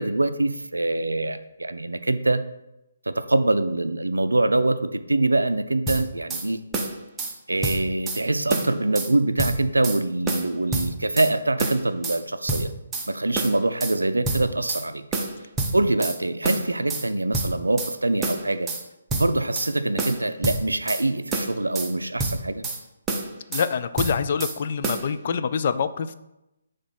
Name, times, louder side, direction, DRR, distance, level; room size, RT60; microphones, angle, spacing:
voice 1, 0.0-2.4 3.1-6.6 7.5-12.7 13.1-15.0 15.7-18.7 19.1-22.7, right 2 dB, 75° right, 11 dB, 0.4 m, -24 dB
sound 1, 5.9-6.5 6.7-7.3 7.6-8.2 8.5-9.1 9.4-10.0 10.3-11.3 11.6-12.2 12.5-13.1 13.4-14.0 14.3-14.8 15.1-16.2 16.4-17.1 17.3-17.9 18.2-18.8 19.1-19.7 20.0-21.0 21.3-21.9 22.2-22.8 23.1-23.7 24.0-24.6 24.8-25.1, right 2 dB, 10° right, 0.6 m, -28 dB
voice 2, 23.5-26.1, left 6 dB, 40° left, 11 dB, 0.3 m, -25 dB
5.9 x 3.2 x 5.6 m, 0.92 s
figure-of-eight pair, 140°, 0 cm